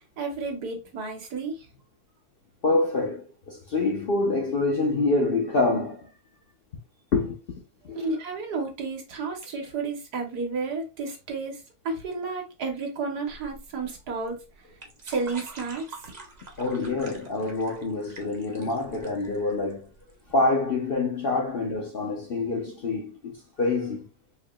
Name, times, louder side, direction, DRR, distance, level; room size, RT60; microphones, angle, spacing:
voice 1, 0.2-1.7 7.9-11.6 11.8-14.4 15.0-15.9, right 4 dB, 85° right, 1.6 m, -31 dB
voice 2, 2.6-6.1 7.1-7.4 7.8-8.1 16.6-19.9 20.3-24.1, left 3 dB, 50° left, 0.7 m, -26 dB
sound 1, 13.3-20.3, right 3 dB, 35° right, 0.7 m, -46 dB
4.6 x 2.9 x 2.3 m
omnidirectional pair, 1.7 m